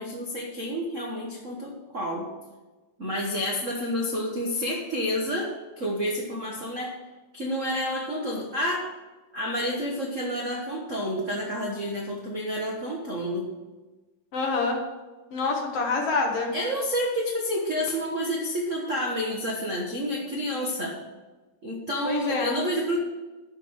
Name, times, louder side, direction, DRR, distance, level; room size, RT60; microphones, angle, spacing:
voice 1, 0.0-2.3 3.0-6.9 7.3-8.8 9.3-13.5 16.5-20.9 21.6-23.0, equal, 50° right, -1 dB, 0.9 m, -29 dB
voice 2, 14.3-14.8 15.3-16.5 22.1-22.6, left 3 dB, 60° left, 1 dB, 2.2 m, -26 dB
12.0 x 5.2 x 6.2 m, 1.2 s
omnidirectional pair, 3.4 m